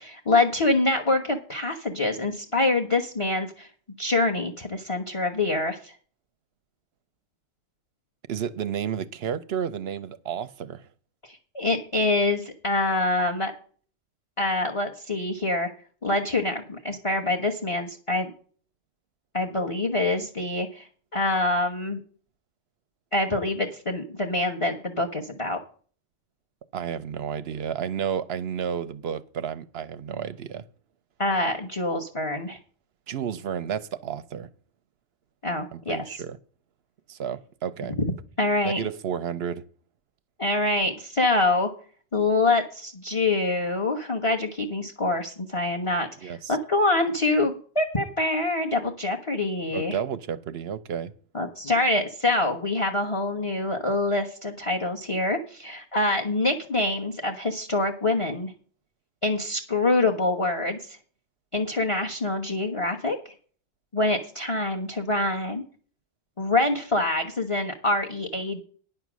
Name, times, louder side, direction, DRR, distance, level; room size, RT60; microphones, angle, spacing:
voice 1, 0.0-3.7 4.0-5.9 11.2-13.5 14.4-15.7 16.0-18.3 19.3-22.0 23.1-25.6 31.2-32.6 35.4-36.0 38.0-38.1 38.4-38.8 40.4-41.7 42.1-50.0 51.3-58.5 59.2-61.0 61.5-63.3 63.9-65.7 66.4-68.6, left 2 dB, 25° left, 1.0 m, -25 dB
voice 2, 8.3-10.8 26.7-30.6 33.1-34.5 35.7-36.4 37.1-38.0 38.6-39.6 46.2-46.6 49.7-51.1, right 8 dB, 55° right, 0.8 m, -31 dB
10.0 x 6.8 x 6.2 m
omnidirectional pair, 1.4 m